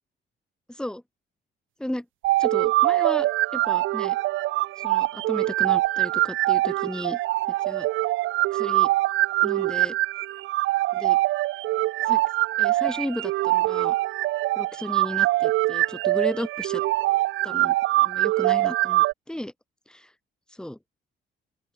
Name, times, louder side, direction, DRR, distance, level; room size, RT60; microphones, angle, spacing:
voice 1, 0.7-1.0 1.8-2.1 2.4-4.2 4.8-7.2 7.6-7.9 8.5-8.9 9.4-10.0 10.9-11.2 12.0-12.2 12.6-13.9 14.5-16.8 17.4-19.5 19.9-20.1 20.5-20.8, left 1 dB, 5° left, 2.8 m, -34 dB
sound 1, 2.2-19.1, right 17 dB, 80° right, 0.4 m, -23 dB
open air
cardioid pair, 90°, 20 cm